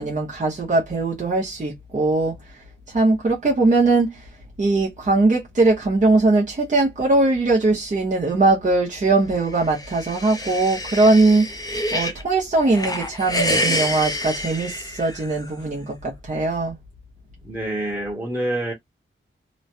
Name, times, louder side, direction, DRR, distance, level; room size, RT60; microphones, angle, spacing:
voice 1, 0.0-2.4 2.9-4.3 4.6-11.6 11.9-16.8, right 3 dB, 35° right, 0.9 m, -20 dB
sound 1, 9.5-12.2 12.6-15.5, left 1 dB, 15° left, 0.6 m, -27 dB
voice 2, 17.4-18.7, right 1 dB, 10° right, 1.1 m, -26 dB
3.1 x 2.2 x 2.6 m
wide cardioid pair, 110°, 21 cm